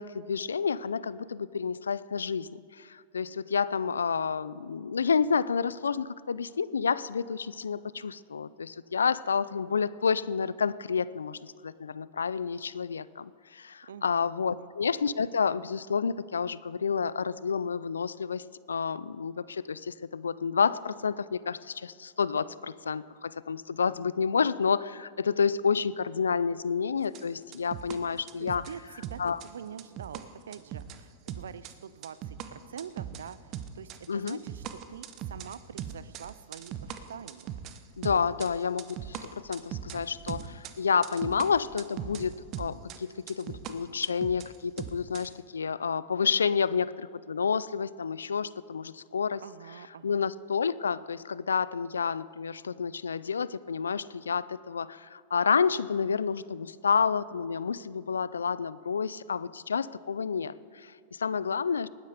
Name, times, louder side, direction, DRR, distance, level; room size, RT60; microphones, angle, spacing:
voice 1, 0.0-28.6 29.2-29.4 34.1-34.4 38.0-49.4 50.0-61.9, left 6 dB, 85° left, 19 dB, 0.4 m, -29 dB
voice 2, 13.9-14.7 28.4-37.5 49.4-50.2, right 8 dB, 75° right, 17 dB, 0.4 m, -45 dB
sound 1, 27.0-28.0 28.3-28.7 29.0-30.2 30.5-31.0 31.3-31.8 32.0-43.0 43.3-43.7 44.0-45.3, right 10 dB, 40° right, 1.0 m, -40 dB
19.5 x 9.6 x 5.0 m, 2.2 s
hypercardioid pair, 100°, 0 cm